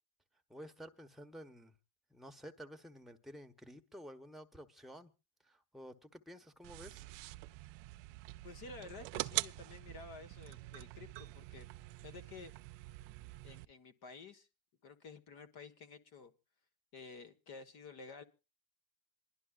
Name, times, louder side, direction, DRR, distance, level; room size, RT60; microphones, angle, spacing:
voice 1, 0.5-1.7 2.1-5.1 5.4-7.0, equal, ahead, 1.0 m, -52 dB
sound 1, 6.6-13.7, right 20 dB, 80° right, 0.6 m, -44 dB
voice 2, 8.4-11.7 12.0-12.5 13.4-14.5 14.8-16.3 16.9-18.2, left 4 dB, 60° left, 1.5 m, -52 dB
27.0 x 11.5 x 2.4 m
cardioid pair, 105°, 43 cm